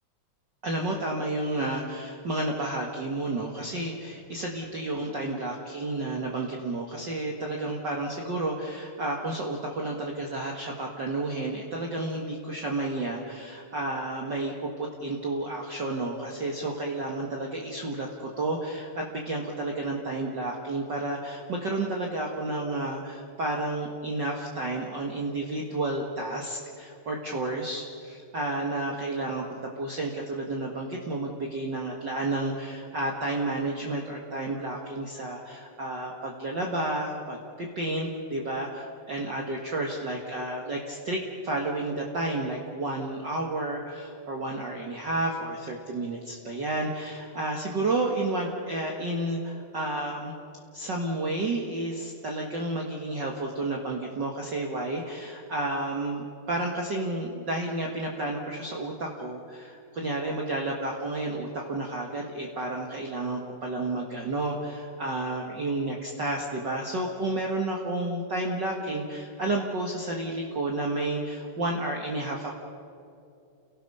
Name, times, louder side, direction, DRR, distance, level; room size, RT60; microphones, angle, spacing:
voice 1, 0.6-50.3 50.7-72.5, right 2 dB, 40° right, -1 dB, 2.0 m, -31 dB
30.0 x 18.0 x 5.6 m, 2.6 s
omnidirectional pair, 3.4 m